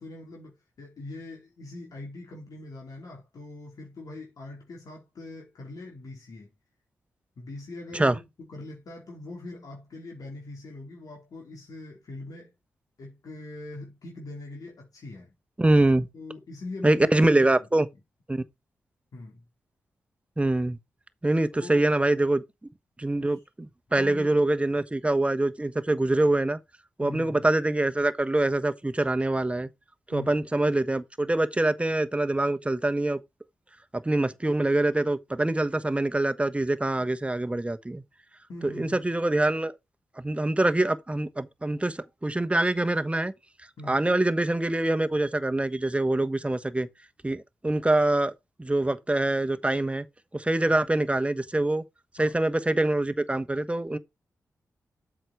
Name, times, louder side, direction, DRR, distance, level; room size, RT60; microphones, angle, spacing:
voice 1, 0.0-6.5 7.4-8.2 8.5-12.5 13.0-15.3 16.1-17.7 19.1-19.4 21.5-21.9 23.2-23.4 23.9-24.5 27.0-27.5 30.1-30.4 38.5-39.1 43.8-44.0 52.2-52.3, left 2 dB, 70° left, 4.0 m, -42 dB
voice 2, 15.6-16.1 16.8-17.9 18.3-18.4 20.4-20.8 21.2-22.4 23.0-23.4 23.9-26.6 27.0-29.7 30.1-33.2 33.9-38.0 38.6-39.7 40.2-43.3 43.9-46.9 47.2-48.3 48.6-50.1 50.3-51.8 52.2-54.0, right 2 dB, 20° right, 1.2 m, -24 dB
7.9 x 6.3 x 4.6 m
supercardioid pair, 45°, 6 cm